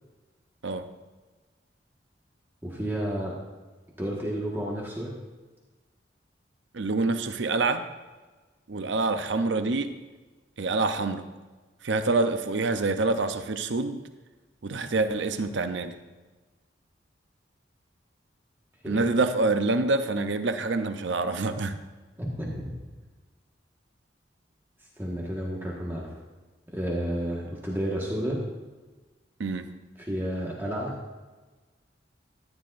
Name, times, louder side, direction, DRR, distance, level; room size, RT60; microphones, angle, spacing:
voice 1, 2.6-3.3 4.0-5.1 18.8-19.1 22.2-22.7 25.0-26.1 26.7-28.4 30.0-30.9, equal, 15° right, -4 dB, 1.5 m, -31 dB
voice 2, 6.7-7.9 8.7-10.0 10.6-11.3 11.8-14.0 14.6-15.9 18.9-21.8 29.4-29.7, right 3 dB, 80° right, 9 dB, 0.6 m, -26 dB
14.0 x 10.5 x 2.6 m, 1.3 s
head